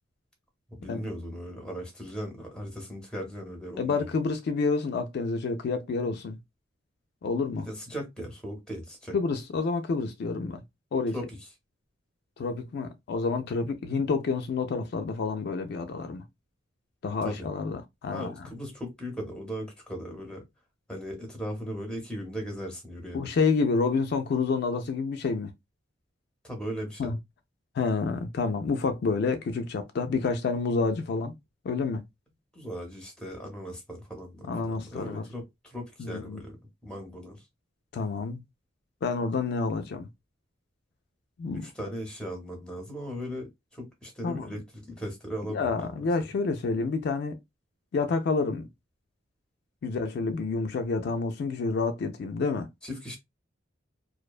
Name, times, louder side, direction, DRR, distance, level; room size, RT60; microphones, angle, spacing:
voice 1, 0.7-4.1 7.5-9.2 11.1-11.3 17.2-17.5 18.1-20.5 20.9-23.3 26.4-27.1 32.5-36.6 36.8-37.4 41.5-45.9 52.8-53.2, equal, 5° left, 0.7 m, -38 dB
voice 2, 3.8-6.4 7.2-7.7 9.1-10.6 10.9-11.1 12.4-16.2 17.0-18.3 23.1-25.5 27.0-27.2 27.7-31.3 31.6-32.0 34.5-35.2 36.0-36.4 37.9-38.4 39.0-40.1 41.4-41.6 44.2-44.5 45.5-47.4 47.9-48.7 49.8-52.7, left 4 dB, 55° left, 0.3 m, -28 dB
2.5 x 2.1 x 2.3 m
head